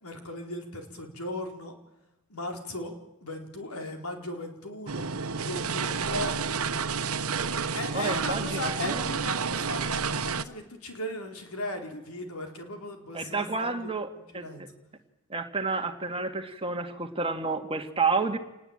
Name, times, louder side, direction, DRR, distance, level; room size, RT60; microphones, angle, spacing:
voice 1, 0.0-1.7 2.3-2.9 3.2-5.1 5.4-6.3 7.7-13.9 14.3-14.7, left 1 dB, 85° left, 4 dB, 4.4 m, -37 dB
sound 1, 4.9-10.4, right 5 dB, 80° right, 1.1 m, -30 dB
voice 2, 7.9-9.1 13.1-14.1 14.3-14.7 15.3-18.4, right 4 dB, 25° right, 6 dB, 2.1 m, -30 dB
27.5 x 20.0 x 9.0 m, 0.99 s
head